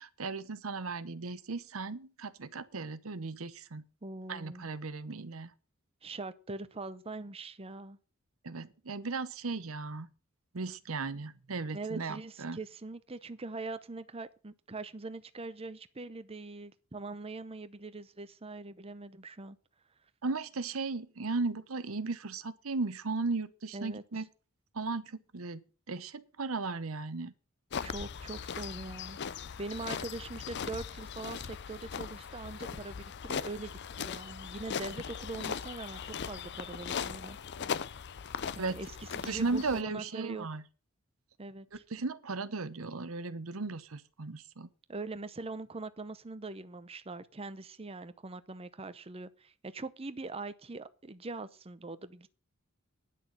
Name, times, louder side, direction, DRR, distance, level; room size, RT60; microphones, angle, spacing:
voice 1, 0.0-3.8 4.3-5.5 8.4-10.1 10.5-12.6 20.2-24.3 24.7-25.6 25.9-27.3 38.6-38.8 39.3-40.6 41.9-44.7, right 3 dB, 85° right, 0.9 m, -36 dB
voice 2, 4.0-4.7 6.0-8.0 11.7-19.6 23.7-24.2 27.8-29.2 29.6-37.4 38.5-40.5 41.4-41.8 44.9-52.3, right 3 dB, 30° right, 0.7 m, -42 dB
sound 1, 27.7-39.8, left 7 dB, 55° left, 0.5 m, -39 dB
10.0 x 6.5 x 8.5 m
head